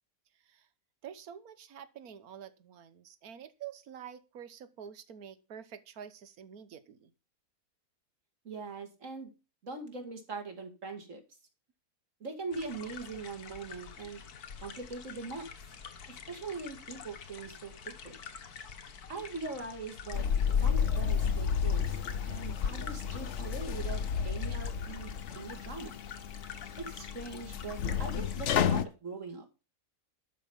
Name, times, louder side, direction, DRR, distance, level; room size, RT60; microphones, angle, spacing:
voice 1, 1.0-7.1, right 8 dB, 75° right, 13 dB, 1.5 m, -48 dB
voice 2, 8.4-9.3 9.6-11.2 12.2-14.2 14.6-15.5 16.1-17.7 18.0-18.2 19.1-20.3 20.6-22.0 22.2-25.1 25.3-25.9 26.8-29.4, right 4 dB, 55° right, 3 dB, 2.9 m, -41 dB
sound 1, 12.5-28.8, left 6 dB, 85° left, 1.8 m, -47 dB
sound 2, 20.1-28.9, left 7 dB, 60° left, 1.0 m, -31 dB
12.0 x 5.6 x 7.3 m, 0.30 s
omnidirectional pair, 1.6 m